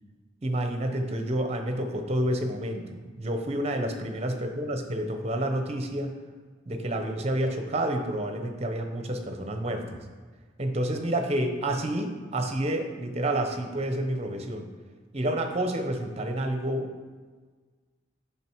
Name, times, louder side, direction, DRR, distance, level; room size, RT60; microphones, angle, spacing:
voice 1, 0.4-6.1 6.7-10.0 10.6-14.7 15.1-16.9, right 1 dB, 35° right, 5 dB, 0.9 m, -29 dB
8.9 x 6.0 x 4.6 m, 1.4 s
head